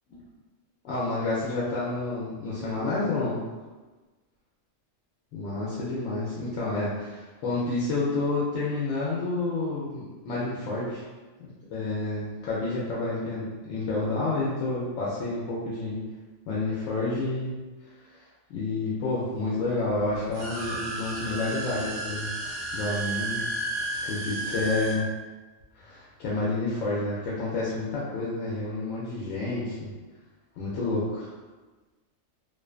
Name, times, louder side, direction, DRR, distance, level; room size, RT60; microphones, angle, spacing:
voice 1, 0.8-3.4 5.3-11.0 11.4-16.0 16.5-17.5 18.5-22.3 22.7-23.4 24.0-25.1 25.7-29.9 30.6-31.3, left 2 dB, 85° left, -7 dB, 1.0 m, -29 dB
sound 1, 20.2-24.9, right 1 dB, 65° right, 0.8 m, -32 dB
2.4 x 2.2 x 2.3 m, 1.2 s
omnidirectional pair, 1.3 m